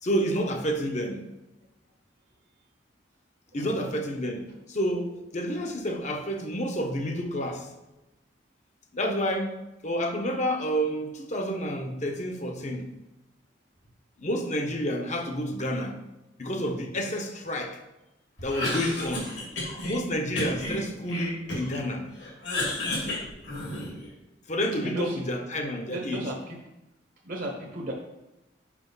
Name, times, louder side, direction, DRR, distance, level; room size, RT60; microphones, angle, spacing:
voice 1, 0.0-1.2 3.5-7.7 8.9-9.6 9.8-12.9 14.2-16.0 16.4-17.8 18.4-19.4 19.8-22.1 24.5-26.2, equal, 40° left, 0.9 m, -29 dB
Cough, 18.4-20.0 20.4-21.8 22.2-24.1, left 2 dB, 75° left, 2.5 m, -32 dB
voice 2, 24.8-25.2 25.9-26.6 27.2-27.9, right 1 dB, 50° right, 0.9 m, -35 dB
6.0 x 5.0 x 5.4 m
head